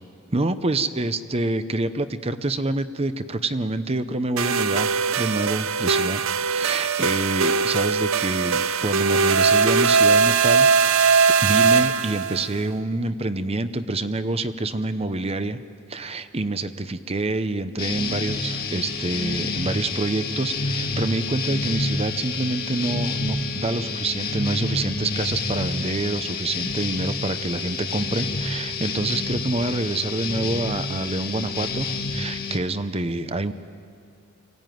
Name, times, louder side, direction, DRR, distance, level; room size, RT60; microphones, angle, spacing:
voice 1, 0.3-6.2 6.5-15.6 15.9-33.5, right 2 dB, 30° right, 11 dB, 0.8 m, -27 dB
sound 1, 4.4-12.5, right 5 dB, 75° right, 0.7 m, -20 dB
sound 2, 17.8-32.6, left 3 dB, 50° left, 1.9 m, -28 dB
25.0 x 16.0 x 9.3 m, 2.5 s
head